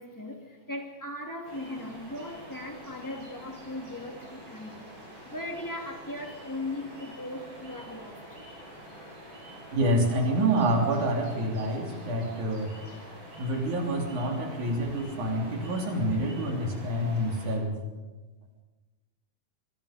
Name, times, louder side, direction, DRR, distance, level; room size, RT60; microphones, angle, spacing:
voice 1, 0.0-8.4, left 1 dB, 5° left, 2 dB, 2.1 m, -38 dB
sound 1, 1.4-17.6, equal, 35° right, 8.1 m, -46 dB
voice 2, 9.7-13.1 13.4-17.8, right 1 dB, 55° right, 1 dB, 4.5 m, -27 dB
25.0 x 23.0 x 5.1 m, 1.2 s
omnidirectional pair, 4.1 m